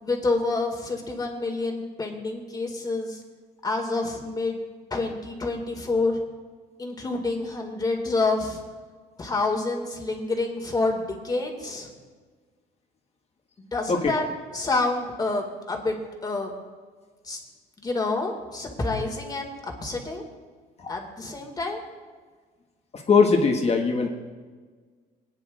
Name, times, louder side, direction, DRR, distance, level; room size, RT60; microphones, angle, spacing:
voice 1, 0.0-3.2 3.6-4.6 4.9-6.2 6.8-8.6 9.2-11.9 13.7-14.2 14.5-16.0 16.2-16.5 17.2-17.4 17.8-20.2 20.9-21.8, left 3 dB, 25° left, 1 dB, 2.3 m, -28 dB
voice 2, 22.9-24.1, left 5 dB, 40° left, 1 dB, 1.7 m, -21 dB
21.0 x 9.9 x 2.6 m, 1.5 s
cardioid pair, 110°, 17 cm